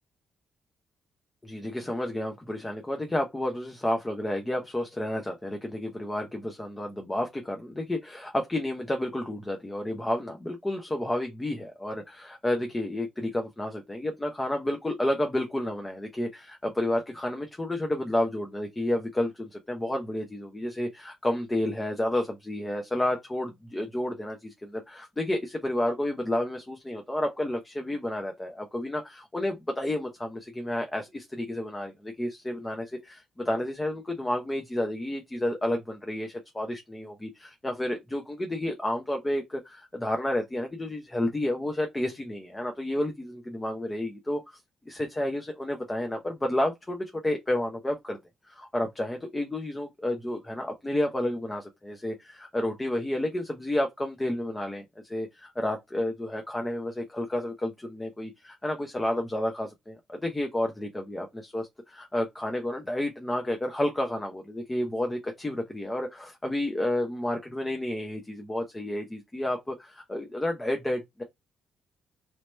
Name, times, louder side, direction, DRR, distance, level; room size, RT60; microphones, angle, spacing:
voice 1, 1.4-44.6 44.9-48.2 48.5-71.2, left 1 dB, 15° left, 0.7 m, -31 dB
3.3 x 2.8 x 3.1 m
cardioid pair, 90°, 0 cm